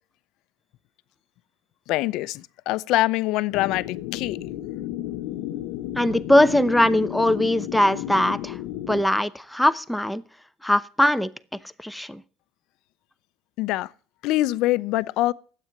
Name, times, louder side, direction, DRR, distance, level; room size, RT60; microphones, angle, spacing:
voice 1, 1.9-4.4 13.6-13.9 14.2-15.3, left 17 dB, 70° left, 0.6 m, -24 dB
sound 1, 3.5-9.0, left 13 dB, 90° left, 1.0 m, -33 dB
voice 2, 6.0-8.6 8.9-10.2 10.6-11.3 11.8-12.2, left 1 dB, 5° left, 0.7 m, -21 dB
12.5 x 8.7 x 8.8 m
cardioid pair, 130°, 0 cm